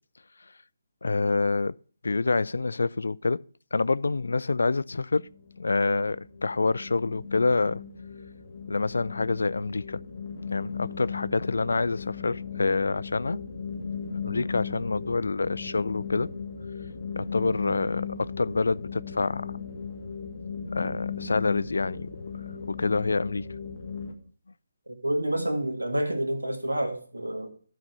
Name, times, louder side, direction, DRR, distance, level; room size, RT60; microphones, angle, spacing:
voice 1, 1.0-1.8 2.0-3.4 3.7-5.3 5.6-7.8 8.7-10.0 10.5-13.4 14.2-16.3 17.2-19.5 20.7-22.1 22.7-23.5, left 3 dB, 70° left, 0.3 m, -27 dB
sound 1, 5.1-24.1, left 6 dB, 50° left, 1.6 m, -37 dB
voice 2, 24.9-27.5, right 1 dB, 85° right, 1.9 m, -28 dB
12.5 x 5.1 x 5.3 m
figure-of-eight pair, 145°, 0 cm